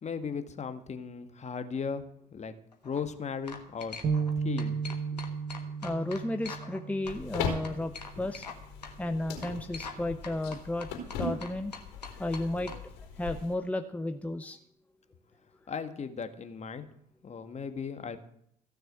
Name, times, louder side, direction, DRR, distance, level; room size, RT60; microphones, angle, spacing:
voice 1, 0.0-2.5 2.8-4.0 4.4-4.8 5.1-5.2 15.7-16.9 17.2-18.2, left 6 dB, 35° left, 9 dB, 1.6 m, -37 dB
sound 1, 2.7-3.0 3.5-4.3 4.6-6.8 7.1-8.6 8.8-8.9 9.4-10.0 10.2-12.8, left 5 dB, 90° left, 1.4 m, -43 dB
sound 2, 4.0-7.6, right 5 dB, 40° right, 1.4 m, -33 dB
voice 2, 5.8-8.5 9.0-10.9 11.2-11.7 12.1-12.9 13.2-14.6, left 1 dB, 5° left, 8 dB, 0.9 m, -33 dB
sound 3, 7.0-13.5, left 5 dB, 65° left, 4.1 m, -39 dB
15.5 x 6.7 x 8.1 m, 0.71 s
figure-of-eight pair, 55°, 21 cm